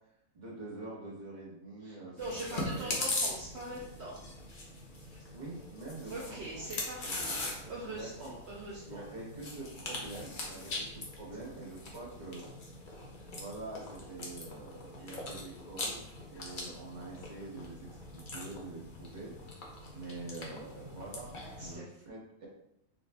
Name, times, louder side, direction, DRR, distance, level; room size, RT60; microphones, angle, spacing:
voice 1, 0.3-3.0 5.3-6.7 7.0-7.1 7.4-7.5 7.8-8.3 8.9-12.5 13.3-19.3 19.9-22.5, right 2 dB, 35° right, -5 dB, 1.2 m, -45 dB
voice 2, 1.8-4.2 5.0-5.2 6.1-7.3 7.7-9.0 12.9-13.2 15.0-15.1 21.6-21.9, right 1 dB, 65° right, -6 dB, 0.9 m, -42 dB
Chewing mastication, 2.2-21.7, left 2 dB, 45° left, 0.8 m, -41 dB
4.1 x 2.3 x 3.3 m, 0.77 s
omnidirectional pair, 1.3 m